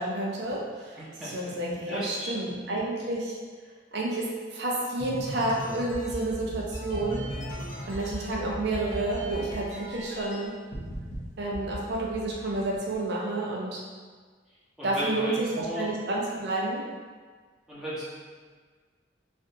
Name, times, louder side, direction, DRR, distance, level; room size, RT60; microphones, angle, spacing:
voice 1, 0.0-3.4 3.9-7.3 7.9-10.5 11.4-13.8 14.8-16.8, right 2 dB, 60° right, -3 dB, 0.6 m, -30 dB
voice 2, 1.0-1.5 1.9-2.5 14.8-15.9 17.7-18.0, equal, 5° right, -11 dB, 0.9 m, -35 dB
sound 1, 5.0-10.4 10.7-11.2 11.5-13.0, equal, 85° left, 0.9 m, -37 dB
3.3 x 2.5 x 2.6 m, 1.5 s
head